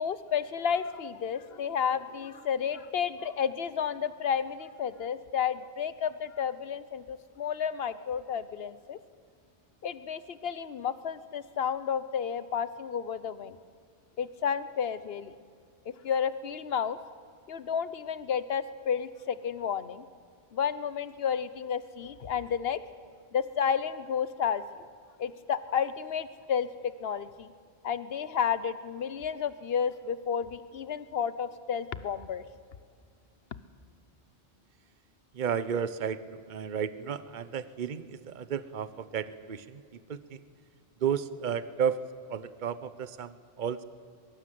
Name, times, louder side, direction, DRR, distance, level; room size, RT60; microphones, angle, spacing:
voice 1, 0.0-9.0 9.8-13.6 14.2-15.3 15.9-17.0 17.5-20.1 20.5-22.8 23.3-24.7 25.2-27.5 27.8-32.4, left 7 dB, 65° left, 14 dB, 1.1 m, -31 dB
voice 2, 35.3-39.8 40.1-40.4 41.0-42.0 42.3-43.8, right 8 dB, 50° right, 14 dB, 1.0 m, -33 dB
22.5 x 22.5 x 7.7 m, 2.2 s
omnidirectional pair, 1.1 m